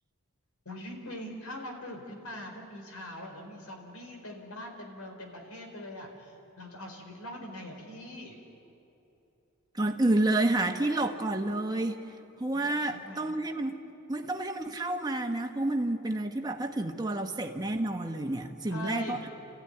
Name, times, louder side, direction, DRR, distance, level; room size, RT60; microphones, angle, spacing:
voice 1, 0.6-8.4 12.5-13.3 18.7-19.3, left 1 dB, 85° left, 2 dB, 4.4 m, -42 dB
voice 2, 9.7-12.0 12.4-13.8 14.1-19.3, right 2 dB, 20° right, 3 dB, 1.4 m, -29 dB
29.5 x 14.5 x 10.0 m, 2.9 s
head